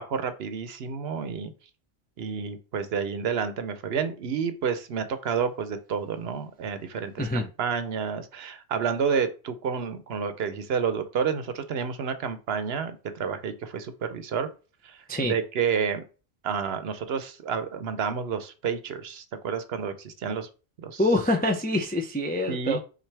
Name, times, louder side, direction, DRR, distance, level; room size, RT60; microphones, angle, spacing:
voice 1, 0.0-1.5 2.2-14.5 14.8-16.0 16.4-20.5 20.8-21.0 22.5-22.8, right 6 dB, 70° right, 0.9 m, -30 dB
voice 2, 21.0-22.8, left 1 dB, 15° left, 0.3 m, -25 dB
5.9 x 2.6 x 3.3 m
omnidirectional pair, 1.1 m